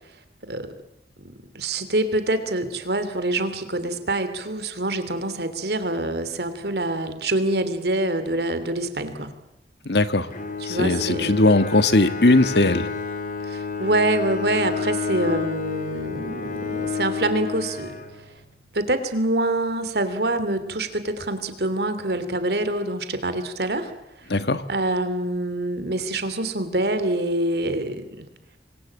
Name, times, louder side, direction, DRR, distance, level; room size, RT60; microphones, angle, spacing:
voice 1, 1.2-9.3 10.6-11.4 13.5-17.9 18.7-23.9 24.7-28.3, right 1 dB, 65° right, 10 dB, 3.0 m, -25 dB
voice 2, 9.8-10.3 10.6-12.9 24.3-24.6, left 2 dB, 70° left, 11 dB, 1.5 m, -19 dB
Bowed string instrument, 10.3-18.5, left 5 dB, 45° left, 2.9 m, -30 dB
27.0 x 22.0 x 8.7 m, 0.87 s
head